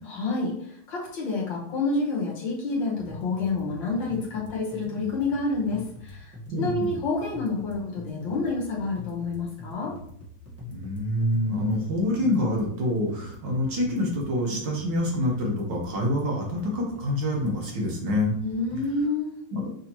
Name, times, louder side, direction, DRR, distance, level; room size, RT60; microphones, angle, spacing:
voice 1, 0.0-10.0 18.4-19.3, left 3 dB, 65° left, -3 dB, 1.8 m, -28 dB
sound 1, 3.0-19.0, left 2 dB, 10° right, 0.7 m, -43 dB
voice 2, 6.5-7.0 10.7-18.3 19.5-19.7, left 1 dB, 65° right, -1 dB, 1.6 m, -26 dB
5.8 x 2.8 x 2.9 m, 0.66 s
omnidirectional pair, 2.3 m